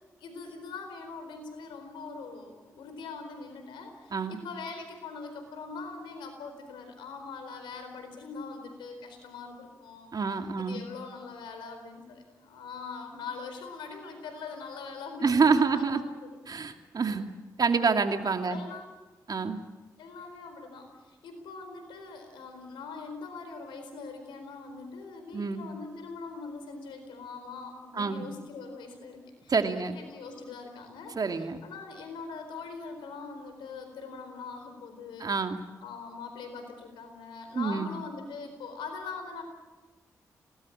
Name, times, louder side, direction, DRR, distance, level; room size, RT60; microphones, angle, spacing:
voice 1, 0.2-10.1 10.6-16.4 18.5-18.9 20.0-35.3 35.8-39.4, left 4 dB, 85° left, 7 dB, 4.3 m, -42 dB
voice 2, 10.1-10.8 15.2-16.0 16.5-17.3 17.6-18.6 19.3-19.6 25.3-25.7 27.9-28.2 29.5-29.9 31.2-31.6 35.2-35.6 37.5-37.9, right 4 dB, 55° right, 6 dB, 2.5 m, -27 dB
26.5 x 19.0 x 8.8 m, 1.2 s
supercardioid pair, 40°, 8 cm